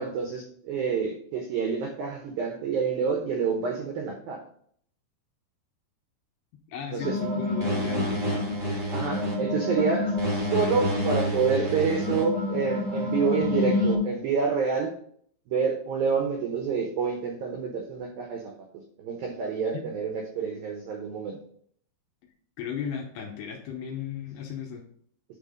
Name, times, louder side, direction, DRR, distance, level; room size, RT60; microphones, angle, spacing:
voice 1, 0.0-4.4 6.9-7.2 8.9-14.9 15.5-18.5 19.0-21.4, right 5 dB, 85° right, 2 dB, 2.0 m, -28 dB
voice 2, 6.7-8.5 19.7-19.9 22.6-24.9, left 8 dB, 80° left, 2 dB, 2.7 m, -35 dB
sound 1, 7.0-14.0, left 1 dB, 25° right, 1.2 m, -28 dB
9.7 x 3.9 x 5.0 m, 0.62 s
omnidirectional pair, 5.6 m